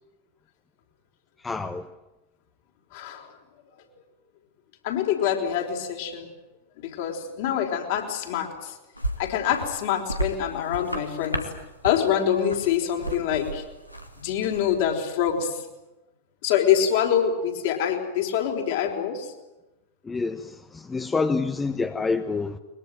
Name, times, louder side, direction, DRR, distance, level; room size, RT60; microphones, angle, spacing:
voice 1, 1.4-1.9 20.0-22.6, left 4 dB, 15° left, 1.1 m, -27 dB
voice 2, 2.9-3.3 4.8-6.3 6.8-8.7 9.2-11.5 11.8-13.6 14.2-15.6 16.4-19.3, left 9 dB, 50° left, 4.7 m, -25 dB
sound 1, 8.9-14.9, right 1 dB, 90° left, 2.4 m, -34 dB
22.5 x 22.0 x 9.4 m
figure-of-eight pair, 90°, 0 cm